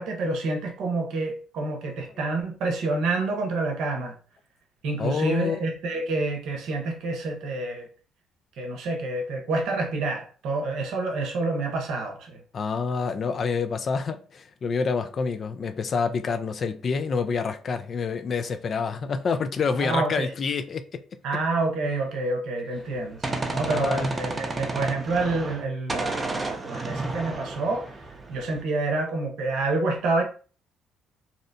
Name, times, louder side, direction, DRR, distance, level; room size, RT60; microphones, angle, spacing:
voice 1, 0.0-4.1 4.8-7.9 8.6-12.4 19.8-20.3 21.2-27.9 28.3-30.2, right 3 dB, 70° right, 0.7 m, -28 dB
voice 2, 5.0-5.6 12.5-21.0 23.7-24.2, left 5 dB, 50° left, 0.3 m, -27 dB
Gunshot gunfire, 22.8-25.6 25.9-28.6, right 2 dB, 30° right, 0.5 m, -32 dB
2.7 x 2.1 x 2.6 m
supercardioid pair, 60°, 0 cm